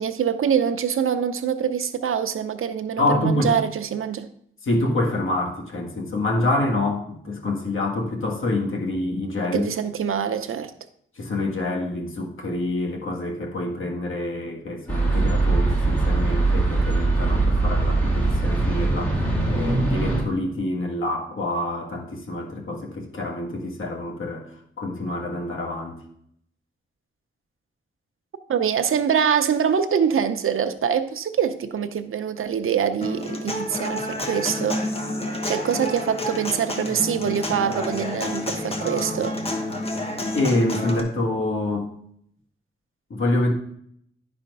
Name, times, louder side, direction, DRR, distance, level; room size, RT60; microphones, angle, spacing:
voice 1, 0.0-4.3 9.4-10.7 28.5-34.8 35.4-39.4, right 7 dB, 85° right, 0.7 m, -24 dB
voice 2, 3.0-3.6 4.6-9.7 11.2-24.5 24.8-26.0 40.3-41.9 43.1-43.5, left 2 dB, 75° left, 1.7 m, -26 dB
sound 1, 14.9-20.2, right 2 dB, 10° left, 2.6 m, -21 dB
Human voice / Acoustic guitar, 33.0-41.0, left 1 dB, 30° left, 1.1 m, -29 dB
10.5 x 4.3 x 5.4 m
wide cardioid pair, 135°, 21 cm